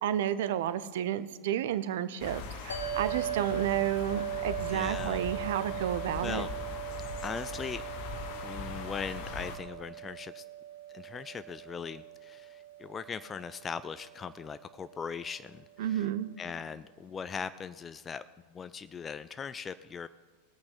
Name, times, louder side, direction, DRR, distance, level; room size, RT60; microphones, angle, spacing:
voice 1, 0.0-6.4 15.8-16.3, right 11 dB, 55° right, 14 dB, 0.6 m, -31 dB
sound 1, 2.2-9.6, left 5 dB, 45° left, 1.1 m, -40 dB
sound 2, 2.7-15.2, right 11 dB, 70° left, 1.5 m, -39 dB
voice 2, 4.7-5.2 6.2-6.5 7.2-7.8 8.4-10.4 10.9-16.1 16.4-18.2 18.5-20.1, left 6 dB, 20° left, 13 dB, 0.3 m, -39 dB
19.5 x 8.5 x 3.9 m, 1.4 s
figure-of-eight pair, 90°, 0 cm